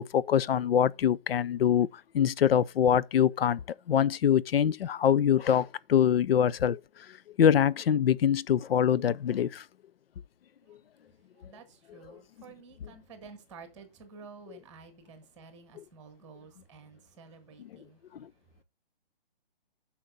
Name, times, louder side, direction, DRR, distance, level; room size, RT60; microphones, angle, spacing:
voice 1, 0.0-1.9 2.1-3.6 3.9-6.8 7.4-9.6, left 9 dB, 70° left, 0.5 m, -24 dB
voice 2, 11.3-18.6, right 5 dB, 5° right, 1.1 m, -52 dB
8.7 x 5.8 x 3.9 m
hypercardioid pair, 165°, 30 cm